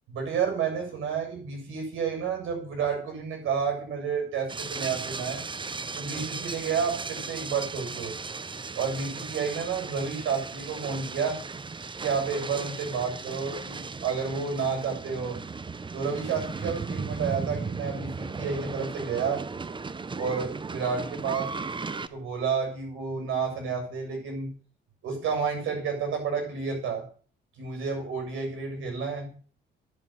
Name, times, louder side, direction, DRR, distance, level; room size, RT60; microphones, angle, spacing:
voice 1, 0.1-5.4 6.0-8.1 8.8-11.4 12.0-15.4 15.9-19.4 20.2-21.5 21.9-24.5 25.0-27.1 27.6-29.4, right 6 dB, 85° right, 3 dB, 7.3 m, -30 dB
sound 1, 4.5-22.1, right 4 dB, 25° right, 0.9 m, -36 dB
11.0 x 7.3 x 9.4 m, 0.42 s
cardioid pair, 90°, 20 cm